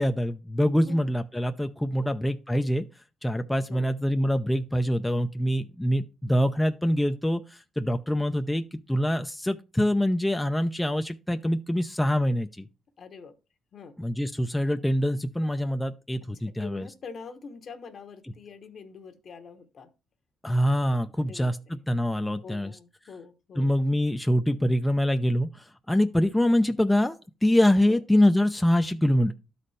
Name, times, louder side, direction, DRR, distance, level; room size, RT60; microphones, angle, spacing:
voice 1, 0.0-2.8 3.2-7.4 7.8-12.6 14.0-16.9 20.4-22.7 23.6-25.5 25.9-27.1 27.4-29.3, equal, 5° left, 0.5 m, -24 dB
voice 2, 0.8-1.2 1.8-2.3 3.7-3.9 13.0-13.3 13.7-14.0 16.6-19.9 21.2-21.8 22.4-23.7 27.9-28.0, left 5 dB, 55° left, 1.0 m, -45 dB
12.0 x 4.2 x 3.2 m
cardioid pair, 90°, 0 cm